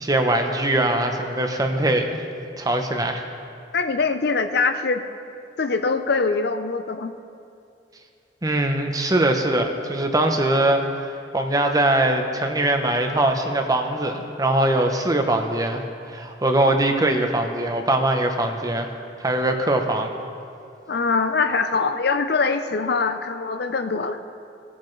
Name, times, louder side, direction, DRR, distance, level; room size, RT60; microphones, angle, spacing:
voice 1, 0.0-2.2 2.6-3.2 8.4-18.9 19.2-20.1, right 1 dB, 20° right, 4 dB, 0.8 m, -22 dB
voice 2, 3.7-5.0 5.6-7.1 20.9-24.2, left 4 dB, 60° left, 8 dB, 0.6 m, -23 dB
19.0 x 8.7 x 3.2 m, 2.5 s
head